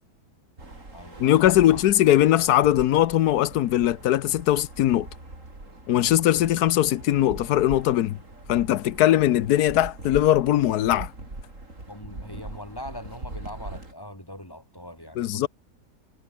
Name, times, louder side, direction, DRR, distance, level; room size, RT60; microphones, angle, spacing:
voice 1, 0.6-1.8 11.9-15.5, left 1 dB, 15° left, 3.4 m, -42 dB
sound 1, 0.6-13.9, right 2 dB, 50° right, 5.9 m, -41 dB
voice 2, 1.2-5.1 5.9-8.2 8.5-11.1 15.2-15.5, left 13 dB, 90° left, 1.3 m, -20 dB
omnidirectional pair, 1.6 m